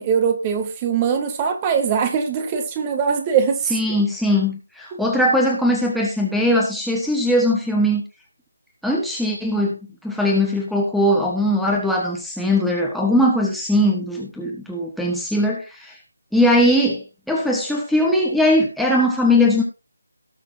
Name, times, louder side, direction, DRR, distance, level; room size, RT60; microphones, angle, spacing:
voice 1, 0.0-4.0 4.9-5.0, right 7 dB, 20° right, 1.5 m, -22 dB
voice 2, 3.7-8.0 8.8-16.0 16.3-19.6, left 1 dB, ahead, 1.3 m, -20 dB
18.5 x 6.8 x 2.8 m
figure-of-eight pair, 155°, 0 cm